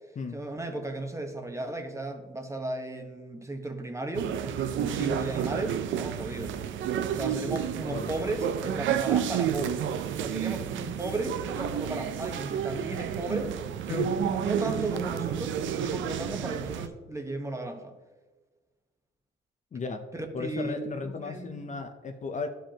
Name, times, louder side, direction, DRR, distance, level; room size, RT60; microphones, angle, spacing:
voice 1, 0.3-6.6 7.1-9.9 10.2-13.5 13.9-14.1 14.4-17.9 20.1-21.8, right 2 dB, 15° right, 4 dB, 1.1 m, -35 dB
sound 1, 4.1-16.9, right 9 dB, 75° right, 0.5 m, -31 dB
voice 2, 13.9-14.4 19.7-20.0 20.3-22.5, left 4 dB, 40° left, 6 dB, 0.6 m, -35 dB
12.0 x 5.1 x 2.9 m, 1.3 s
cardioid pair, 90°, 20 cm